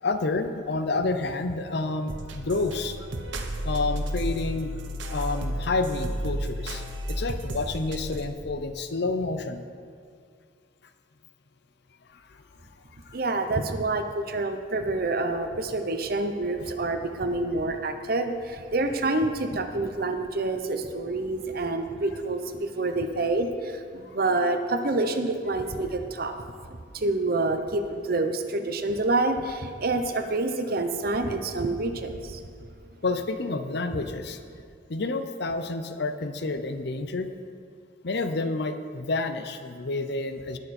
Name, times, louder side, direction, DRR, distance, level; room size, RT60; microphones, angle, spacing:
voice 1, 0.0-3.0 3.6-4.7 5.1-9.6 12.1-12.4 13.1-13.2 16.6-16.7 33.0-34.4 34.9-37.3 38.0-40.6, left 3 dB, 60° left, 9 dB, 0.7 m, -29 dB
sound 1, 2.1-8.2, equal, 75° right, 1.1 m, -32 dB
voice 2, 13.1-26.4 26.9-32.4, right 2 dB, 50° right, 7 dB, 0.9 m, -27 dB
20.5 x 6.8 x 4.3 m, 2.2 s
head